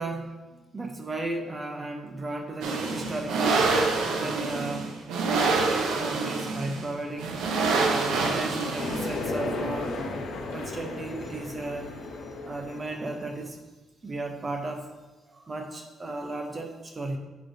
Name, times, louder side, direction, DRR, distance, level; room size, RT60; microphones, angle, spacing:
voice 1, 0.0-3.6 4.0-4.9 5.3-7.3 7.8-10.0 10.5-11.9 12.4-13.6 14.0-14.9 15.3-17.2, right 2 dB, 30° right, 3 dB, 0.7 m, -35 dB
sound 1, 2.6-9.4, right 3 dB, 85° right, 0.7 m, -26 dB
sound 2, 8.8-13.3, left 2 dB, 80° left, 0.8 m, -34 dB
7.3 x 5.1 x 2.7 m, 1.2 s
cardioid pair, 90°, 0 cm